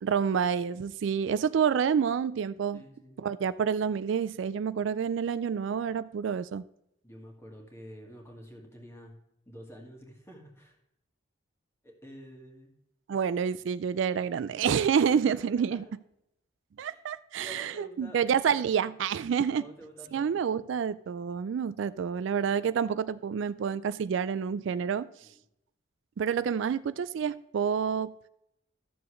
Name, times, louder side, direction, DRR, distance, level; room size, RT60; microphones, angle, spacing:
voice 1, 0.0-2.8 3.2-6.6 13.1-15.8 16.8-19.6 20.1-25.1 26.2-28.1, right 7 dB, 70° right, 0.3 m, -28 dB
voice 2, 2.7-3.2 7.0-9.1 9.5-10.8 11.8-12.7 15.1-15.3 15.7-15.8 16.8-17.0 17.4-18.9 19.6-20.5 25.2-25.4, equal, 15° left, 1.7 m, -49 dB
13.5 x 6.9 x 3.2 m
head